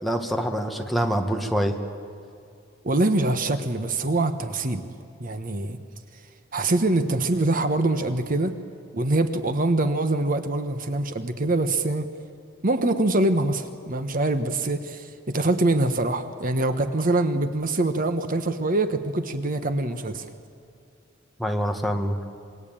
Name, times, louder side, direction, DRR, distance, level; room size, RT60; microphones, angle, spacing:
voice 1, 0.0-1.8 21.4-22.2, equal, ahead, 3 dB, 1.7 m, -25 dB
voice 2, 2.8-4.8 5.2-5.8 6.5-8.5 8.9-12.1 12.6-20.3, right 2 dB, 45° right, 9 dB, 1.2 m, -24 dB
26.5 x 22.5 x 9.0 m, 2.4 s
head